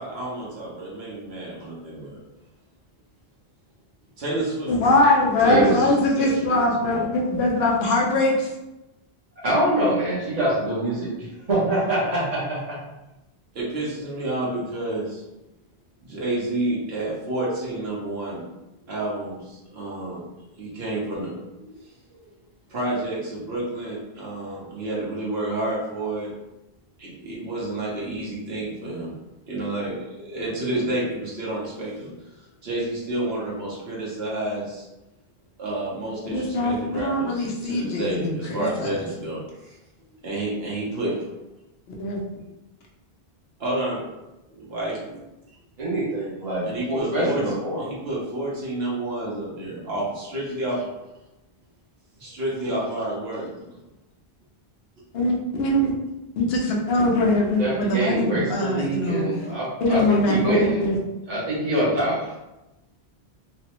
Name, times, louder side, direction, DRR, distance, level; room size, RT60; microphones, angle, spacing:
voice 1, 0.0-2.2 4.2-4.9 5.4-7.1 13.5-15.2 16.0-18.4 18.9-20.2 20.6-22.2 22.7-26.3 27.0-29.1 29.5-34.9 35.6-41.3 43.6-44.0 44.5-45.0 46.6-47.5 47.8-50.9 52.2-53.5, right 1 dB, 70° right, -5 dB, 1.2 m, -30 dB
voice 2, 4.7-8.5 36.3-38.9 42.0-42.2 55.1-55.9 56.4-59.3 59.8-61.0, left 2 dB, 75° left, -1 dB, 0.9 m, -22 dB
voice 3, 5.5-5.9 9.4-12.8 45.8-47.8 57.6-60.9 61.3-62.2, right 1 dB, 40° right, -9 dB, 0.9 m, -24 dB
3.2 x 2.0 x 3.0 m, 0.98 s
omnidirectional pair, 1.1 m